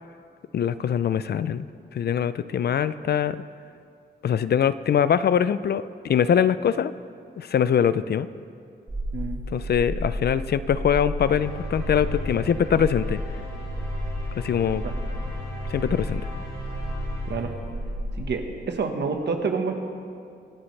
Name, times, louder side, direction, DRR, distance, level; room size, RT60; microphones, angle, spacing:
voice 1, 0.5-1.7 1.9-3.4 4.2-6.9 7.4-8.3 9.5-13.2 14.4-14.8 15.7-16.3, left 8 dB, 60° left, 15 dB, 0.4 m, -23 dB
sound 1, 8.9-18.3, equal, 20° right, 1.0 m, -32 dB
sound 2, 11.2-18.2, left 1 dB, 15° left, 3.1 m, -38 dB
voice 2, 18.2-19.7, right 5 dB, 65° right, 4 dB, 1.3 m, -28 dB
25.0 x 11.0 x 3.2 m, 2.4 s
wide cardioid pair, 170°, 19 cm